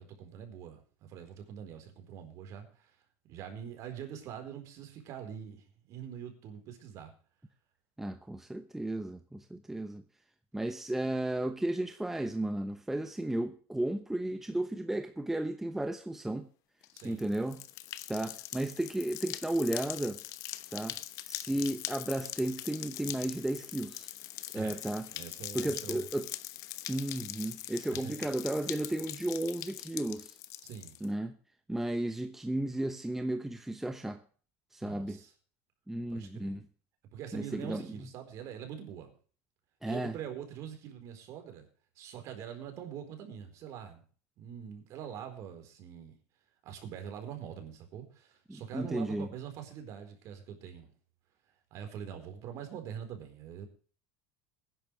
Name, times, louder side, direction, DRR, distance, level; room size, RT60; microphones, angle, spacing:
voice 1, 0.0-2.9 3.3-7.1 16.9-17.3 24.5-24.8 25.1-26.0 27.9-28.2 30.6-31.0 34.8-35.3 36.1-36.6 37.1-39.1 39.8-41.7 42.0-44.0 44.4-46.1 46.6-50.9 51.7-53.7, right 9 dB, 50° right, 4.4 m, -44 dB
voice 2, 8.0-10.0 10.5-16.5 17.0-17.7 18.1-20.2 20.7-21.0 21.3-24.1 24.5-25.1 25.5-26.3 26.9-30.4 31.0-31.3 31.7-34.2 34.7-35.2 35.9-36.7 37.3-38.1 39.8-40.2 48.5-49.3, right 1 dB, 5° right, 0.9 m, -34 dB
sound 1, 16.8-31.1, left 15 dB, 50° left, 1.0 m, -42 dB
19.5 x 10.5 x 3.4 m
supercardioid pair, 135°, 7 cm